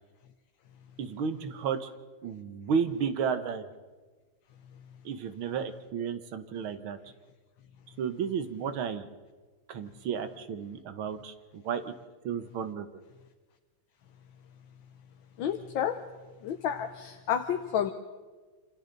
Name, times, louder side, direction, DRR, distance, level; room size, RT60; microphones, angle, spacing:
voice 1, 1.0-1.9 2.2-3.6 5.1-7.0 8.0-9.1 9.7-11.9 12.2-13.0, right 7 dB, 80° right, 9 dB, 2.0 m, -32 dB
voice 2, 15.4-16.0 16.4-17.9, left 9 dB, 70° left, 7 dB, 1.6 m, -30 dB
27.0 x 26.5 x 4.0 m, 1.4 s
omnidirectional pair, 2.2 m